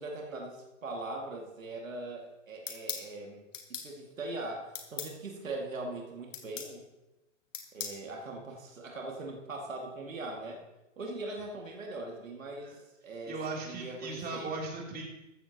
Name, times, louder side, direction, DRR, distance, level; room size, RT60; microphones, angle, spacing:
voice 1, 0.0-3.4 3.7-6.9 7.7-10.6 11.0-14.5, right 2 dB, 90° right, 0 dB, 2.4 m, -41 dB
sound 1, 2.7-3.1 3.5-3.9 4.7-5.1 6.3-6.7 7.5-8.0, left 7 dB, 75° left, 1.9 m, -39 dB
voice 2, 13.3-15.0, right 3 dB, 25° right, -2 dB, 3.3 m, -38 dB
14.5 x 14.0 x 3.0 m, 1.0 s
hypercardioid pair, 110°, 38 cm